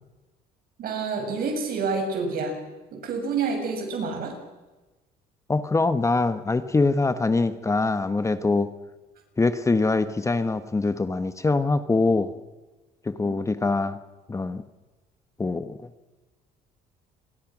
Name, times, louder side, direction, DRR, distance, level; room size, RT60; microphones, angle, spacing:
voice 1, 0.8-2.6 2.9-4.3 13.2-13.4, right 4 dB, 60° right, 3 dB, 7.5 m, -28 dB
voice 2, 5.5-8.7 9.4-12.3 13.0-14.0 14.3-14.6 15.4-15.9, left 3 dB, 15° left, 11 dB, 1.3 m, -23 dB
28.5 x 23.0 x 6.3 m, 1.2 s
cardioid pair, 110°, 17 cm